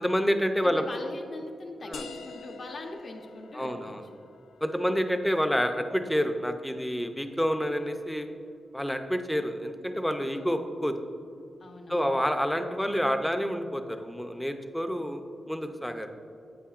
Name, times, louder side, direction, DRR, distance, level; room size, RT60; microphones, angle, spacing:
voice 1, 0.0-0.8 1.9-2.0 3.5-4.0 4.6-8.3 8.7-10.9 11.9-15.2 15.5-16.1, equal, 5° left, 6 dB, 0.5 m, -28 dB
voice 2, 0.6-3.9 10.1-10.6 11.6-12.1, left 2 dB, 50° left, 2 dB, 0.9 m, -41 dB
sound 1, 1.9-7.3, left 4 dB, 75° left, 0.4 m, -48 dB
8.6 x 8.5 x 2.4 m, 2.5 s
wide cardioid pair, 130°, 0 cm